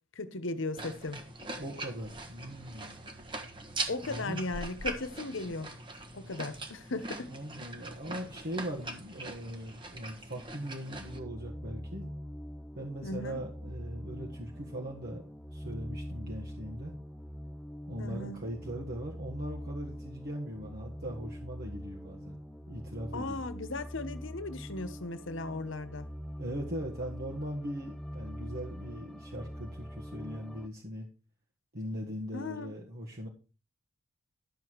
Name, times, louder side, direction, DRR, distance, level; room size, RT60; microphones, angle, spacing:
voice 1, 0.1-1.2 3.9-5.7 6.1-7.3 13.0-13.4 18.0-18.4 23.1-26.1 32.3-32.7, left 2 dB, 60° left, 1.1 m, -37 dB
sound 1, 0.8-11.2, right 2 dB, 25° right, 1.3 m, -42 dB
voice 2, 1.6-3.0 4.0-4.4 7.3-12.1 12.7-15.2 15.5-17.0 17.9-22.4 22.7-23.4 26.4-31.1 31.7-33.3, equal, 50° right, 1.6 m, -40 dB
sound 2, 10.9-30.7, equal, 5° left, 0.5 m, -43 dB
12.0 x 7.0 x 4.6 m
head